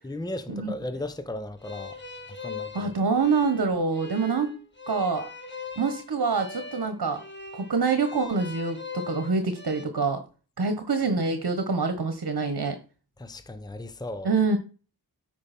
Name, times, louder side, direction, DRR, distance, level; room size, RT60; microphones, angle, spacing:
voice 1, 0.0-2.0 2.3-2.9 13.2-14.3, left 1 dB, 10° left, 0.8 m, -36 dB
sound 1, 1.6-9.8, left 4 dB, 30° left, 1.7 m, -41 dB
voice 2, 2.7-4.5 4.9-5.3 5.8-7.2 7.5-10.2 10.6-12.8 14.2-14.6, right 4 dB, 65° right, 1.3 m, -26 dB
8.7 x 5.3 x 4.3 m
cardioid pair, 50°, 39 cm